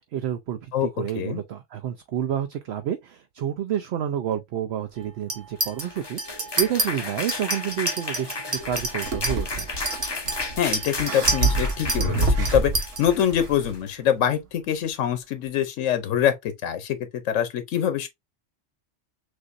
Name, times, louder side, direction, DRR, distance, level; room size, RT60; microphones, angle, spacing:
voice 1, 0.1-9.7, right 10 dB, 65° right, 0.8 m, -29 dB
Chink clink, 5.3-5.8 6.2-6.9 7.3-13.0, right 2 dB, 35° right, 0.9 m, -29 dB
sound 1, 5.6-13.9, left 3 dB, 25° left, 0.6 m, -34 dB
sound 2, 8.6-13.7, right 2 dB, 80° right, 1.4 m, -27 dB
voice 2, 10.6-17.0 17.2-18.1, left 9 dB, 85° left, 1.0 m, -24 dB
6.3 x 2.6 x 2.5 m
omnidirectional pair, 1.3 m